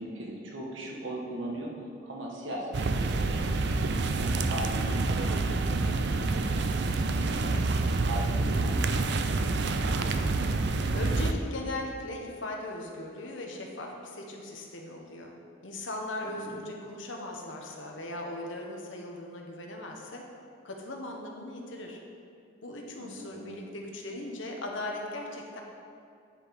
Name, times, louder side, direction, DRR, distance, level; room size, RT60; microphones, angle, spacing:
voice 1, 0.0-3.6 4.1-7.5 7.9-9.1 9.4-10.3 16.2-16.6 23.0-23.7, right 1 dB, 75° right, -2 dB, 1.2 m, -40 dB
sound 1, 2.7-11.3, right 3 dB, 60° right, 0.4 m, -27 dB
voice 2, 10.9-15.4 15.6-20.3 20.6-22.0 22.6-25.6, left 1 dB, 75° left, 1 dB, 1.2 m, -38 dB
9.5 x 5.0 x 5.1 m, 2.4 s
head